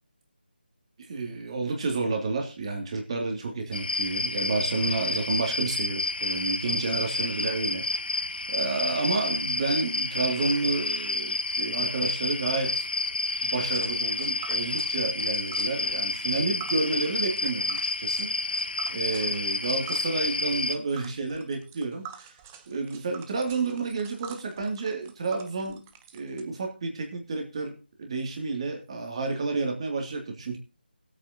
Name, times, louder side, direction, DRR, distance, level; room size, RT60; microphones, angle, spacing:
voice 1, 1.0-8.1 8.5-12.9 13.4-22.3 22.7-25.8 26.1-30.6, right 3 dB, 35° right, 2.5 m, -30 dB
sound 1, 3.7-20.7, left 3 dB, 65° left, 1.5 m, -30 dB
Tick, 13.7-26.4, right 9 dB, 15° right, 0.8 m, -47 dB
21.5 x 8.8 x 2.8 m
figure-of-eight pair, 160°, 5 cm